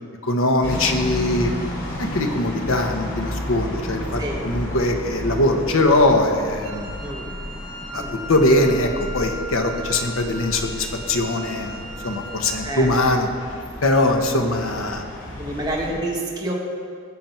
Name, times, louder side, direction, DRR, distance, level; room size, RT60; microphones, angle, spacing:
voice 1, 0.2-1.5 2.0-7.0 7.9-8.0 8.3-13.3 13.8-15.0, left 1 dB, 85° left, 4 dB, 1.2 m, -21 dB
sound 1, 0.6-15.9, equal, 65° left, 3.0 m, -33 dB
Wind instrument woodwind instrument, 6.6-12.9, equal, 65° right, 2.9 m, -37 dB
voice 2, 15.4-16.5, right 1 dB, 20° right, -2 dB, 1.6 m, -28 dB
17.5 x 7.5 x 4.5 m, 2.1 s
head